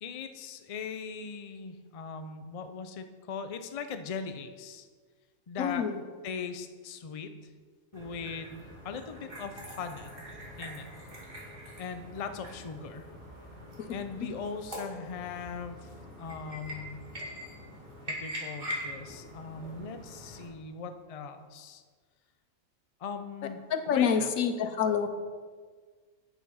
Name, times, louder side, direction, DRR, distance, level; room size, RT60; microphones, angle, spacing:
voice 1, 0.0-4.9 5.5-5.8 6.2-7.5 7.9-10.1 10.6-10.9 11.8-13.1 13.9-15.9 16.2-17.0 17.2-17.4 18.1-21.8 23.0-23.6 23.9-24.3, left 5 dB, 45° left, 8 dB, 0.4 m, -39 dB
voice 2, 5.6-6.0 23.7-25.1, left 7 dB, 70° left, 9 dB, 1.2 m, -27 dB
sound 1, 7.9-20.5, equal, 35° right, 2.4 m, -43 dB
9.5 x 7.2 x 5.6 m, 1.5 s
omnidirectional pair, 1.5 m